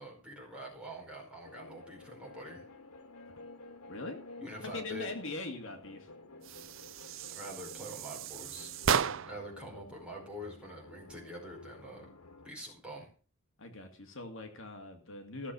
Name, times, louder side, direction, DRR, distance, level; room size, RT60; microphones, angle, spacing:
voice 1, 0.0-2.6 4.4-5.1 7.3-8.7 9.2-12.1 12.4-13.1, equal, 5° right, -2 dB, 4.9 m, -45 dB
sound 1, 1.4-12.5, left 2 dB, 90° left, 1.9 m, -52 dB
voice 2, 4.6-6.1 13.6-15.5, left 2 dB, 60° left, 5 dB, 2.3 m, -41 dB
sound 2, 6.4-9.5, right 7 dB, 60° right, 0.5 m, -34 dB
16.0 x 7.1 x 6.4 m, 0.39 s
head